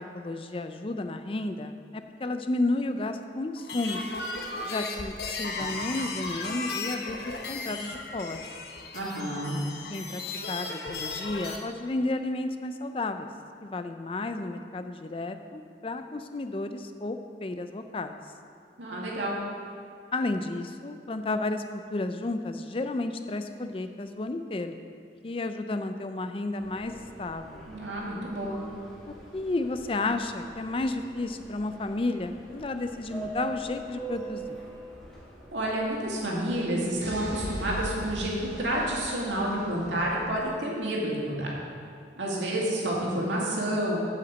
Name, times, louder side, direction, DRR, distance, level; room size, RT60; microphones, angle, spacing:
voice 1, 0.0-4.0 4.6-8.5 9.9-13.3 13.6-18.2 20.1-21.6 21.9-24.7 25.2-27.7 29.1-34.6 42.4-42.5, left 2 dB, 30° left, 8 dB, 0.4 m, -32 dB
sound 1, 3.6-11.6, left 3 dB, 60° left, 0.9 m, -36 dB
voice 2, 8.9-9.6 18.8-19.3 27.7-28.6 35.5-41.6 42.2-44.0, right 1 dB, 85° right, -4 dB, 2.2 m, -29 dB
Subway metro underground, 26.6-40.4, right 2 dB, ahead, 1.5 m, -45 dB
sound 2, 37.0-39.9, equal, 65° right, 1.8 m, -38 dB
8.1 x 5.8 x 7.4 m, 2.4 s
head